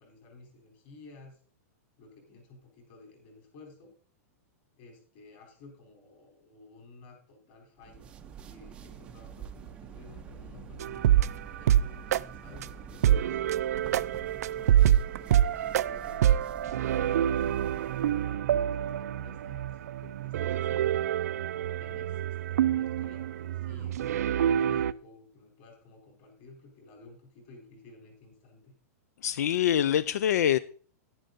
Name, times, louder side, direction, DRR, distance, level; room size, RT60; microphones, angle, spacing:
voice 1, 0.0-1.4 2.0-3.9 4.8-11.0 11.6-13.8 14.6-21.0 21.8-28.7, left 3 dB, 35° left, 4.0 m, -53 dB
sound 1, 7.8-18.3, right 8 dB, 10° right, 0.5 m, -46 dB
sound 2, 10.0-19.6, left 4 dB, 65° left, 3.3 m, -58 dB
sound 3, 10.8-12.2 12.6-12.7 13.0-24.9, right 11 dB, 80° right, 0.4 m, -26 dB
voice 2, 29.2-30.6, left 10 dB, 85° left, 0.4 m, -25 dB
10.5 x 10.0 x 4.0 m
supercardioid pair, 175°, 8 cm